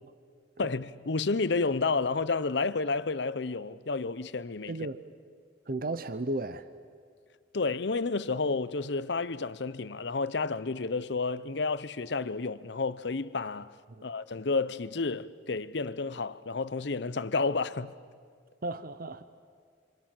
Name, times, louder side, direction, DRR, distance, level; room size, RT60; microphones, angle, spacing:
voice 1, 0.6-4.8 7.5-13.7 14.0-17.9, left 4 dB, 65° left, 0.8 m, -31 dB
voice 2, 4.7-5.0 5.7-6.7 14.0-14.1 18.6-19.3, right 2 dB, 50° right, 0.8 m, -34 dB
27.5 x 27.0 x 7.6 m
head